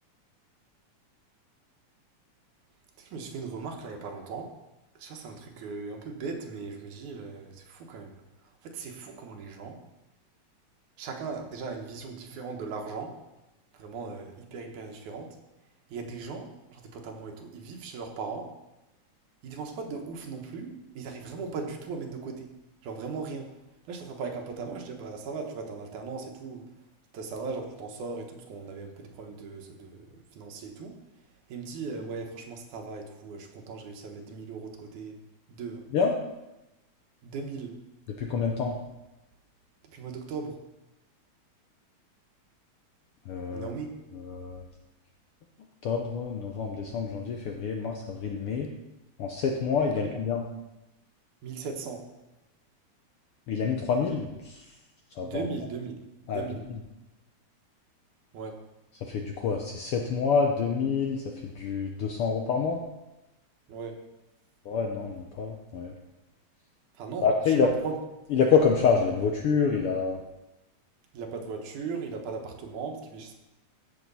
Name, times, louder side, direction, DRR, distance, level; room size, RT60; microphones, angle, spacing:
voice 1, 3.0-4.6 5.0-8.1 8.6-9.8 11.0-13.2 13.8-15.4 15.9-18.5 19.4-22.5 22.8-23.5 23.9-26.7 27.1-31.0 31.5-35.2 35.5-35.8 37.2-37.7 39.8-40.6 43.5-44.0 50.0-50.1 51.4-52.1 55.2-56.0 56.2-56.7 58.3-58.6 63.7-64.0 67.0-68.0 71.1-73.3, right 4 dB, 85° right, 3 dB, 2.7 m, -38 dB
voice 2, 38.2-38.8 43.3-43.7 44.1-44.7 45.8-48.7 49.2-50.4 53.5-54.6 55.2-55.5 56.3-56.4 56.7-56.8 59.0-62.8 64.6-65.9 67.2-67.7 68.3-70.2, left 5 dB, 75° left, 2 dB, 1.3 m, -27 dB
15.0 x 6.4 x 4.1 m, 0.98 s
omnidirectional pair, 3.4 m